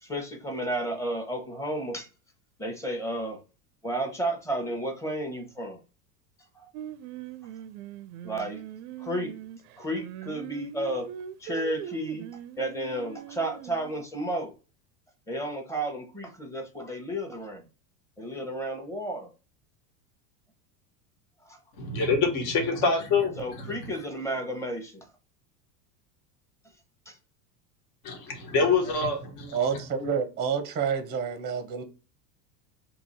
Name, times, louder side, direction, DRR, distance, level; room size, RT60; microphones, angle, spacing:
voice 1, 0.0-2.1 2.6-3.4 3.8-5.8 6.5-6.7 8.2-8.6 9.0-9.3 9.8-11.1 11.4-12.3 12.6-14.5 15.3-17.6 18.2-19.3 21.4-21.6 23.4-25.1 27.1-27.2, right 1 dB, 5° left, 0.9 m, -32 dB
Singing, 6.7-14.0, right 10 dB, 70° right, 0.5 m, -41 dB
voice 2, 21.8-23.7 28.0-29.6, left 4 dB, 50° left, 1.4 m, -26 dB
voice 3, 29.5-31.8, right 6 dB, 20° right, 0.6 m, -28 dB
2.9 x 2.8 x 4.0 m
supercardioid pair, 110°, 48 cm